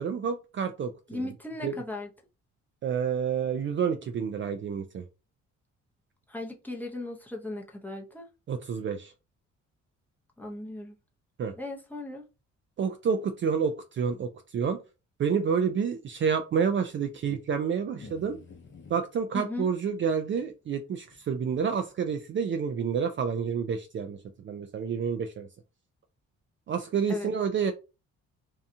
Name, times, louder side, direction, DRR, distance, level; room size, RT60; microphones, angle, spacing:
voice 1, 0.0-1.2 1.6-1.7 2.8-5.0 8.5-9.1 11.4-11.5 12.8-14.8 15.2-18.4 18.9-24.2 24.4-25.5 26.7-27.7, right 6 dB, 40° right, 6 dB, 0.4 m, -29 dB
voice 2, 1.1-2.1 6.3-8.3 10.4-11.0 11.6-12.2 19.3-19.7 27.1-27.3, left 2 dB, 5° left, 0 dB, 0.7 m, -37 dB
sound 1, 18.0-19.0 20.4-20.5 21.1-21.2, left 4 dB, 40° left, 0.7 m, -48 dB
2.8 x 2.3 x 2.6 m, 0.29 s
cardioid pair, 90°, 30 cm